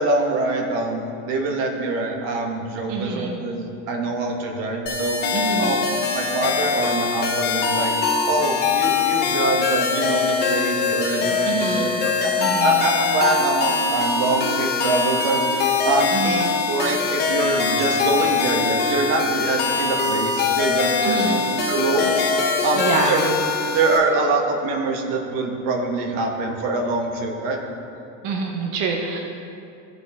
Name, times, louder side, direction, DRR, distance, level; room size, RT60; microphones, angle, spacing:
voice 1, 0.0-7.9 8.3-21.4 21.7-23.4 23.7-27.6, right 2 dB, 80° right, 2 dB, 1.5 m, -24 dB
voice 2, 2.9-3.4 5.3-5.8 11.4-12.0 12.4-12.8 16.1-16.6 21.0-21.4 22.8-23.3 28.2-29.2, right 4 dB, 45° right, 1 dB, 0.8 m, -26 dB
sound 1, 4.9-24.0, left 5 dB, 25° left, 0.7 m, -22 dB
14.5 x 4.9 x 3.6 m, 2.7 s
cardioid pair, 165°, 45 cm